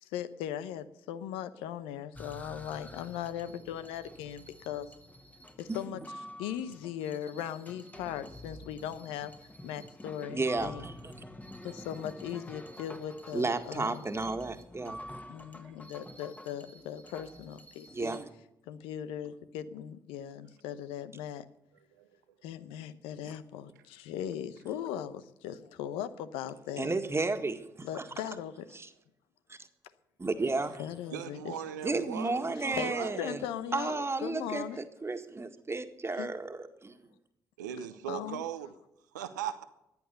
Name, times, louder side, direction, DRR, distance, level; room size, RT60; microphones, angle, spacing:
voice 1, 0.0-4.9 5.6-6.0 6.4-10.9 11.6-14.0 15.3-18.2 18.7-21.5 22.4-26.9 27.8-28.8 30.8-31.6 32.6-34.8 36.1-36.4 38.1-38.4, left 10 dB, 75° left, 13 dB, 0.8 m, -39 dB
sound 1, 2.2-18.2, equal, 15° left, 1.6 m, -49 dB
voice 2, 10.3-10.9 13.3-15.0 17.9-18.3 26.8-28.0 28.7-28.9 29.5-29.6 30.2-30.8 31.8-33.4 33.7-37.0, right 3 dB, 25° right, 8 dB, 1.8 m, -33 dB
voice 3, 31.1-33.2 37.6-38.7 39.1-39.6, right 10 dB, 85° right, 11 dB, 0.8 m, -39 dB
14.5 x 10.5 x 6.8 m, 0.85 s
hypercardioid pair, 40°, 10 cm